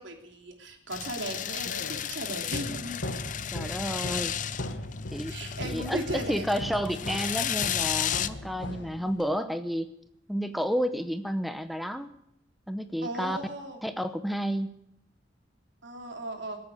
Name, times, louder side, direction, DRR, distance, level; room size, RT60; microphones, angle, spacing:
voice 1, 0.0-3.1 5.3-6.4 13.0-13.8 15.8-16.6, right 1 dB, 85° right, 3 dB, 3.0 m, -37 dB
sound 1, 0.9-8.3, left 9 dB, 45° left, 0.6 m, -33 dB
sound 2, 1.3-9.4, left 1 dB, 80° left, 1.5 m, -39 dB
voice 2, 3.5-4.3 5.1-5.4 5.6-9.9 10.3-12.1 12.7-13.4 13.8-14.7, equal, ahead, 9 dB, 0.7 m, -31 dB
19.5 x 8.6 x 8.3 m, 0.77 s
head